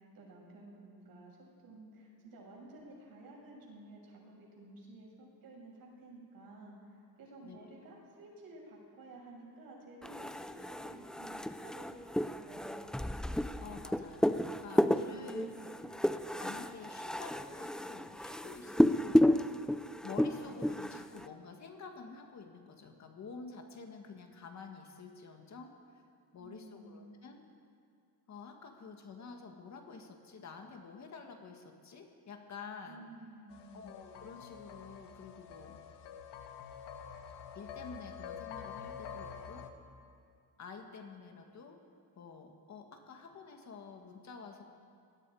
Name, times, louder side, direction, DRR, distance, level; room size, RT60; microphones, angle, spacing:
voice 1, 0.0-1.4 1.6-13.0 15.0-15.7 26.4-27.1 32.8-33.9, right 2 dB, 60° right, -2 dB, 7.0 m, -53 dB
sound 1, 10.0-21.3, left 1 dB, ahead, 0.4 m, -32 dB
voice 2, 13.6-15.5 16.4-19.4 20.0-26.0 26.3-27.4 28.3-33.1 33.7-35.8 37.5-39.7 40.6-41.8 42.2-44.6, left 5 dB, 45° left, 3 dB, 2.0 m, -49 dB
sound 2, 33.5-39.7, left 7 dB, 85° left, 1.5 m, -47 dB
27.5 x 19.0 x 5.0 m, 2.4 s
cardioid pair, 135°, 40 cm